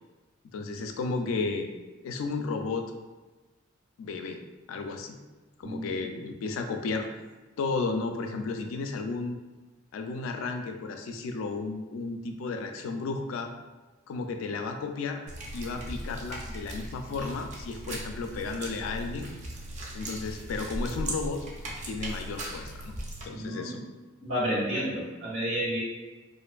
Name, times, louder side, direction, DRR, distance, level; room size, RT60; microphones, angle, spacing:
voice 1, 0.5-1.7 2.0-2.9 4.0-4.4 4.7-5.2 5.6-7.1 7.6-9.4 9.9-13.5 14.1-15.2 15.5-19.3 19.9-21.4 21.8-22.9 23.2-23.8, left 4 dB, 80° left, 6 dB, 0.3 m, -33 dB
voice 2, 5.6-6.0 23.3-23.8 24.2-25.8, equal, 70° right, -6 dB, 1.1 m, -31 dB
sound 1, 15.3-23.2, right 1 dB, 35° right, 0.4 m, -38 dB
2.5 x 2.4 x 2.2 m, 1.2 s
head